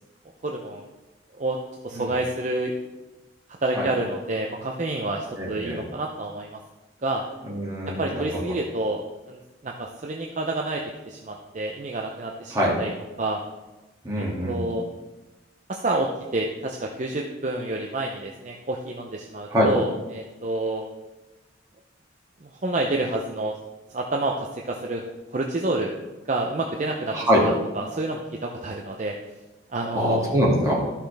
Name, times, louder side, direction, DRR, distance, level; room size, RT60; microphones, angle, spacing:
voice 1, 0.4-0.8 1.4-1.6 1.8-2.7 3.6-6.6 7.0-7.2 8.0-12.9 13.2-13.4 14.2-14.8 15.7-20.9 22.4-23.6 23.9-25.0 25.3-25.9 26.3-27.2 27.4-29.1 29.7-30.2, right 2 dB, 40° right, 1 dB, 0.6 m, -28 dB
voice 2, 5.4-5.8 7.4-8.4 12.5-12.7 14.0-14.7 19.5-19.7 27.1-27.4 29.9-30.8, equal, 15° right, -5 dB, 2.3 m, -23 dB
13.0 x 5.8 x 3.4 m, 1.1 s
head